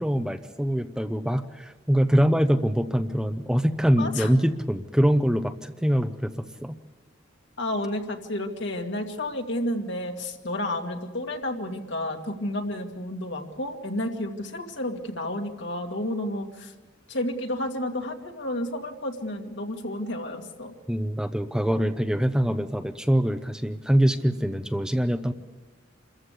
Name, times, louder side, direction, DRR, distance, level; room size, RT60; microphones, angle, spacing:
voice 1, 0.0-6.8 20.9-25.3, equal, 5° right, 8 dB, 0.7 m, -24 dB
voice 2, 4.0-4.3 7.6-16.7 17.1-20.7, left 1 dB, 65° left, 3 dB, 2.3 m, -31 dB
27.5 x 14.5 x 8.3 m, 1.2 s
head